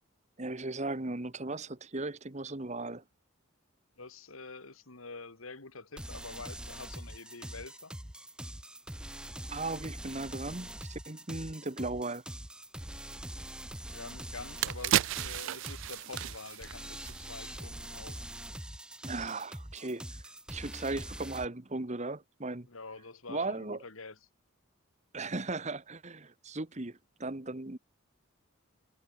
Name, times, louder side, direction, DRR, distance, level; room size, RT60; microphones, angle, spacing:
voice 1, 0.4-3.0 9.5-12.2 19.0-20.0 20.5-22.7 23.3-23.8 25.1-27.8, right 2 dB, 35° right, 1.4 m, -37 dB
voice 2, 4.0-7.9 13.9-18.3 22.7-24.2, left 3 dB, 75° left, 2.6 m, -47 dB
sound 1, 6.0-21.5, right 1 dB, 5° right, 0.9 m, -44 dB
sound 2, 13.9-14.0 14.4-17.7 18.0-18.1, right 12 dB, 65° right, 0.3 m, -33 dB
head